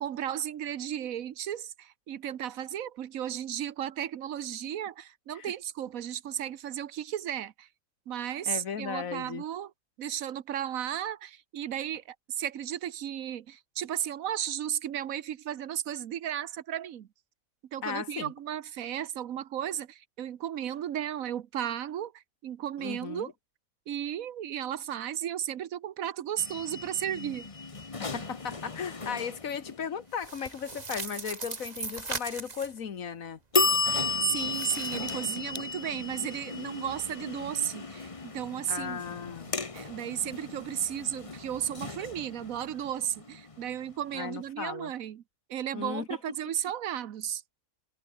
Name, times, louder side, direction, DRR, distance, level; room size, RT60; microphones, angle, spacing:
voice 1, 0.0-7.7 8.1-9.7 10.0-17.1 17.7-23.3 23.9-27.5 34.2-39.0 39.7-45.2 45.5-47.4, right 10 dB, 85° right, 1.3 m, -34 dB
voice 2, 8.5-9.4 17.8-18.3 22.8-23.3 28.0-33.4 38.7-39.5 44.1-44.9 45.7-46.1, left 7 dB, 80° left, 1.8 m, -36 dB
sound 1, 26.4-30.1 33.5-44.2, left 3 dB, 25° left, 1.2 m, -34 dB
sound 2, 30.1-32.8 34.5-35.6, right 4 dB, 30° right, 1.5 m, -39 dB
omnidirectional pair, 1.4 m